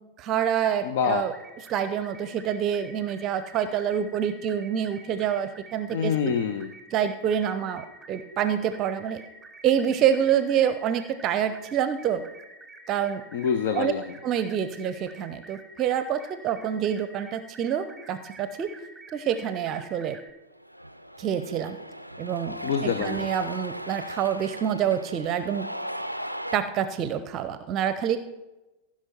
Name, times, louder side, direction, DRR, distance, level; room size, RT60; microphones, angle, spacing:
voice 1, 0.2-1.3 1.7-6.3 6.9-9.2 9.6-12.2 12.9-13.2 13.7-13.9 14.2-18.7 19.1-20.2 21.2-21.8 22.2-25.7 26.5-28.2, right 9 dB, 35° right, 11 dB, 0.6 m, -27 dB
voice 2, 0.8-1.2 5.9-6.7 13.3-14.1 22.6-23.3, left 7 dB, 55° left, 10 dB, 0.6 m, -26 dB
sound 1, 1.2-20.3, right 2 dB, 5° right, 1.2 m, -49 dB
Cheering, 20.5-26.6, equal, 90° right, 0.4 m, -37 dB
15.5 x 5.9 x 4.4 m, 1.0 s
figure-of-eight pair, 90°, 0 cm